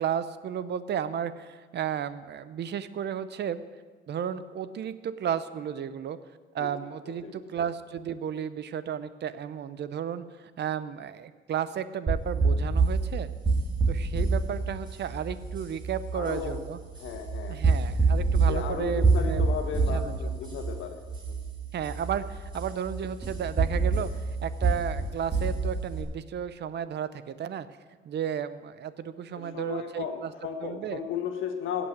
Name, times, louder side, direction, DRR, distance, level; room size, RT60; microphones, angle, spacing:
voice 1, 0.0-3.6 4.1-6.2 6.5-13.3 13.9-16.8 17.5-19.5 19.9-20.3 21.7-24.1 24.4-27.7 28.1-30.3 30.6-31.0, right 8 dB, 60° right, 14 dB, 0.7 m, -33 dB
sound 1, 12.1-26.0, right 4 dB, 25° right, 2.9 m, -27 dB
voice 2, 16.1-16.6 17.0-17.7 18.4-21.0 29.3-31.9, left 7 dB, 85° left, 5 dB, 1.5 m, -35 dB
16.0 x 6.1 x 7.5 m, 1.4 s
cardioid pair, 90°, 20 cm